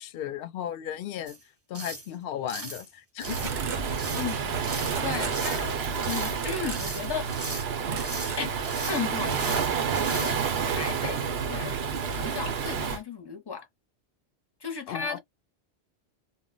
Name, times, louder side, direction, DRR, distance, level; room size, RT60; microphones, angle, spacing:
voice 1, 0.0-1.4 1.7-3.5 14.9-15.2, left 10 dB, 65° left, 0.7 m, -35 dB
sound 1, 1.3-1.4 1.7-2.1 2.5-2.9 3.2-3.6 4.0-4.3 4.6-5.0 5.3-5.7 6.0-6.4 6.7-7.7 8.0-8.4 8.6-9.0 9.3-9.7 9.9-10.3, right 2 dB, 20° right, 0.4 m, -38 dB
Waves surf, 3.2-13.0, right 6 dB, 75° right, 0.9 m, -29 dB
sound 2, 3.3-5.9 6.4-6.9 7.2-7.5 7.9-8.5 8.8-9.0, right 5 dB, 50° right, 0.7 m, -38 dB
voice 2, 4.1-4.6 5.0-5.8 6.0-7.3 8.4-8.5 8.9-9.6 10.0-10.4 10.7-11.8 12.2-13.7 14.6-15.2, left 6 dB, 30° left, 0.6 m, -35 dB
2.1 x 2.0 x 3.7 m
omnidirectional pair, 1.1 m